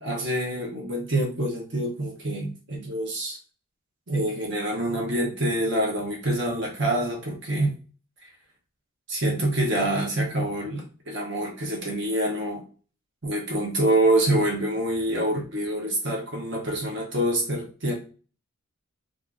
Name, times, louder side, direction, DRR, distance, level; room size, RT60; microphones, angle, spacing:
voice 1, 0.0-3.4 4.1-7.7 8.2-8.3 9.1-12.6 13.2-17.9, right 1 dB, 55° right, 0 dB, 0.8 m, -26 dB
2.6 x 2.5 x 3.5 m, 0.36 s
head